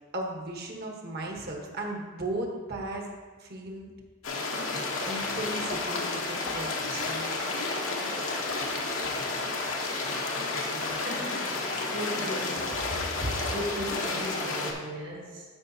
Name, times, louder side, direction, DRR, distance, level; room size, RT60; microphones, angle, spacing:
voice 1, 0.1-3.1 3.4-3.9 4.5-4.7 5.0-7.6 11.0-11.1 13.2-13.3, right 1 dB, 50° right, 1 dB, 1.1 m, -36 dB
sound 1, 4.2-14.7, left 3 dB, 85° left, 1.0 m, -31 dB
voice 2, 10.8-12.8 13.2-15.5, equal, 75° right, -4 dB, 2.1 m, -37 dB
12.0 x 5.1 x 2.7 m, 1.4 s
head